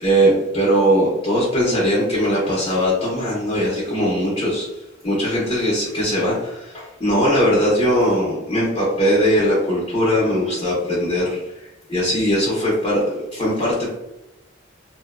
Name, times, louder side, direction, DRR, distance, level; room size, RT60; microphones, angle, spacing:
voice 1, 0.0-4.7 5.0-14.0, equal, 25° left, -7 dB, 0.7 m, -20 dB
2.6 x 2.1 x 2.3 m, 0.94 s
head